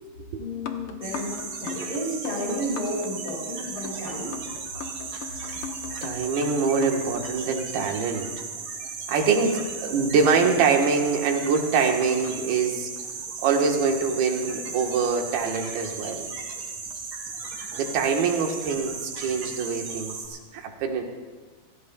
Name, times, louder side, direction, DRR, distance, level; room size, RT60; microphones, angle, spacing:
voice 1, 0.4-4.4, equal, 40° left, -3 dB, 6.6 m, -32 dB
sound 1, 0.5-8.2 10.3-13.2 14.4-15.5 16.1-16.4 16.9-17.0, left 6 dB, 85° left, 1.2 m, -41 dB
sound 2, 1.0-20.3, right 5 dB, 65° right, 4.2 m, -36 dB
voice 2, 6.0-8.3 9.1-12.9 13.4-16.3 17.8-21.0, right 5 dB, 90° right, 2 dB, 3.4 m, -24 dB
29.0 x 17.0 x 2.3 m, 1.3 s
omnidirectional pair, 4.2 m